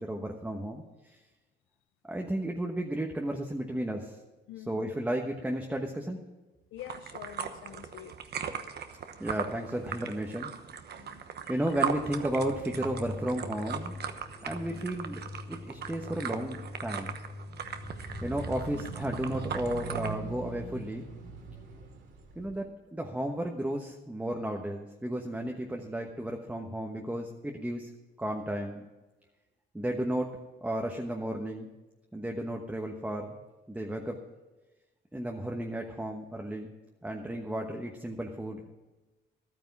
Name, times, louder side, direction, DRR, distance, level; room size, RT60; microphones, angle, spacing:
voice 1, 0.0-1.2 2.1-4.2 4.7-6.2 9.2-10.5 11.5-14.0 14.4-15.2 15.5-17.1 17.5-17.6 18.2-21.0 22.3-27.9 28.2-28.8 29.7-30.3 30.6-31.7 32.1-33.4 33.7-34.2 35.1-36.7 37.0-38.7, right 1 dB, 5° right, 1.2 m, -33 dB
voice 2, 4.5-4.9 6.7-8.2 11.0-11.6 14.7-14.9 18.7-18.9, left 11 dB, 80° left, 0.6 m, -47 dB
sound 1, 6.8-20.2, right 7 dB, 55° right, 1.0 m, -39 dB
sound 2, 11.7-19.5, left 2 dB, 25° left, 3.2 m, -45 dB
sound 3, 17.6-22.6, right 3 dB, 75° right, 2.9 m, -42 dB
12.5 x 9.5 x 6.0 m
cardioid pair, 90°, 20 cm